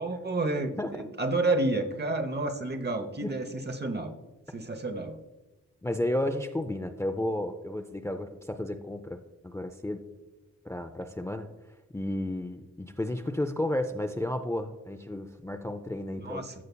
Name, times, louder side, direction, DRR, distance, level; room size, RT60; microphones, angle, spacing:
voice 1, 0.0-4.1 4.5-5.2 16.2-16.5, right 2 dB, 35° right, 8 dB, 0.8 m, -30 dB
voice 2, 5.8-10.1 10.6-11.5 11.9-16.5, left 1 dB, 10° left, 6 dB, 0.4 m, -32 dB
15.0 x 5.4 x 2.3 m, 1.2 s
wide cardioid pair, 95°, 30 cm